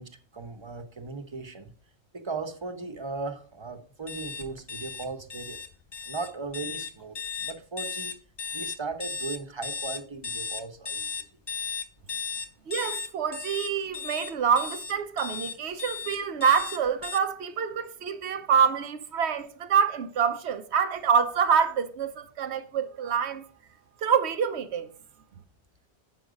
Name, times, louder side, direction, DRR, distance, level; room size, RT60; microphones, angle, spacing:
voice 1, 0.0-1.7 2.1-5.6 6.1-8.2 8.5-11.1, right 4 dB, 30° right, 0.8 m, -37 dB
sound 1, 4.1-17.2, left 6 dB, 40° left, 0.3 m, -36 dB
voice 2, 12.7-23.5 24.0-24.9, right 7 dB, 80° right, 1.1 m, -26 dB
7.8 x 5.9 x 5.1 m
omnidirectional pair, 1.1 m